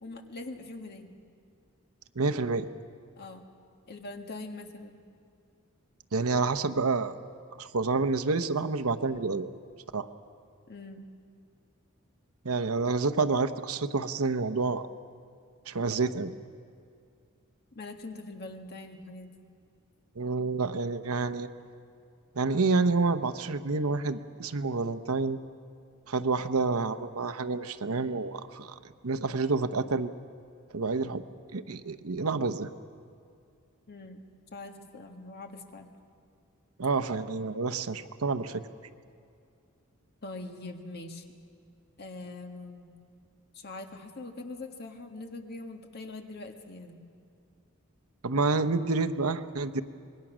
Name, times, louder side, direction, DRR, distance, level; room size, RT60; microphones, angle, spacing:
voice 1, 0.0-1.1 3.2-3.4 3.9-5.0 10.7-11.1 17.7-19.3 33.9-35.9 40.2-41.3 42.0-42.9 43.5-47.1, left 2 dB, 50° left, 4 dB, 1.7 m, -43 dB
voice 2, 2.2-2.7 6.1-7.2 7.6-9.5 9.9-10.1 12.4-14.8 15.7-16.3 20.2-21.5 22.4-25.4 26.1-28.7 29.0-30.1 30.7-31.2 31.5-32.7 36.8-38.6 48.2-49.8, right 3 dB, 75° right, 11 dB, 0.9 m, -28 dB
26.0 x 21.0 x 6.2 m, 2.4 s
head